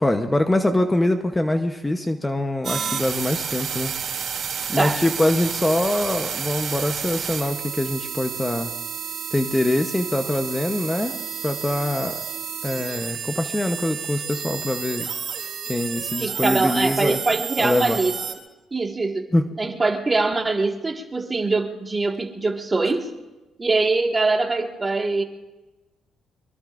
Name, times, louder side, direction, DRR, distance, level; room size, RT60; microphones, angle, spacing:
voice 1, 0.0-3.9 4.7-8.7 9.3-12.2 12.6-15.1 15.7-17.2 17.6-18.0 19.3-19.5, left 1 dB, 15° left, 6 dB, 0.9 m, -24 dB
sound 1, 2.6-18.3, right 7 dB, 60° right, 2.7 m, -31 dB
voice 2, 16.2-18.1 18.7-19.3 19.6-23.1 23.6-25.2, right 3 dB, 25° right, 2 dB, 1.8 m, -23 dB
23.5 x 23.0 x 2.6 m, 1.1 s
cardioid pair, 90°, 0 cm